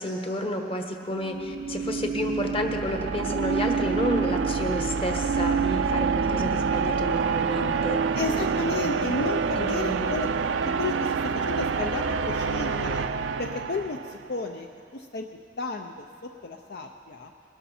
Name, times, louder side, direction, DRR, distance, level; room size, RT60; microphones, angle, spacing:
voice 1, 0.0-8.0 8.7-9.1 9.5-10.1, left 1 dB, 30° left, 4 dB, 1.2 m, -31 dB
sound 1, 1.2-14.3, right 5 dB, 80° right, 0.5 m, -27 dB
voice 2, 8.2-10.3 10.8-13.1 13.4-14.7 14.9-15.3 15.6-16.1 16.4-17.3, left 3 dB, 55° left, 4 dB, 0.6 m, -32 dB
21.5 x 12.5 x 4.3 m, 2.5 s
head